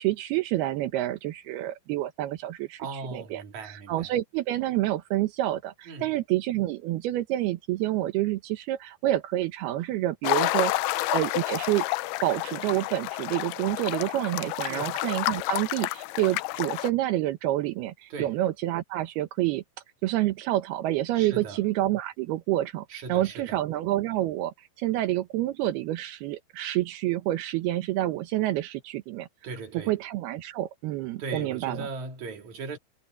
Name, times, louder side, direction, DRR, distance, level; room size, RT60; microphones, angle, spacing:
voice 1, 0.0-11.9 12.2-19.6 20.0-29.3 29.7-31.9, right 15 dB, 80° right, 3.0 m, -28 dB
voice 2, 2.8-4.1 5.9-6.1 14.7-14.9 18.1-18.4 21.1-21.6 22.9-23.6 29.4-30.0 31.2-32.8, right 3 dB, 50° right, 3.9 m, -38 dB
sound 1, 10.2-16.9, left 18 dB, 85° left, 2.6 m, -29 dB
omnidirectional pair, 4.5 m